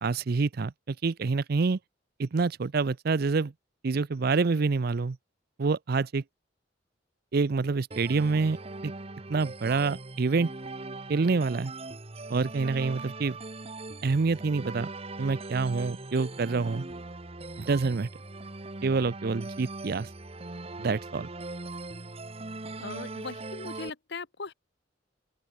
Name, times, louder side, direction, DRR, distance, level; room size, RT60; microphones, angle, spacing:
voice 1, 0.0-1.8 2.2-3.5 3.8-5.2 5.6-6.2 7.3-8.6 8.8-8.9 9.3-10.5 11.1-11.7 12.3-13.4 14.0-14.9 15.2-16.8 17.6-18.1 18.8-20.1 20.8-21.3, right 4 dB, 55° right, 0.5 m, -27 dB
sound 1, 7.9-23.9, right 2 dB, 35° right, 1.4 m, -40 dB
voice 2, 22.8-24.5, left 4 dB, 65° left, 1.2 m, -39 dB
open air
head